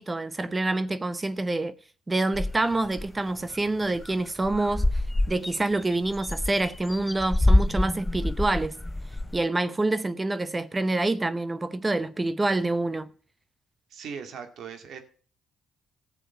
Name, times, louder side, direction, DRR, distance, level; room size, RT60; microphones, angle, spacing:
voice 1, 0.0-1.7 2.1-8.8 9.3-13.1, right 2 dB, 20° right, 0.7 m, -27 dB
sound 1, 2.3-3.1 3.5-3.6 3.9-4.1 4.4-9.4, left 1 dB, 15° left, 0.5 m, -26 dB
voice 2, 13.9-15.0, right 6 dB, 70° right, 2.1 m, -39 dB
14.5 x 7.5 x 5.5 m
cardioid pair, 90°, 0 cm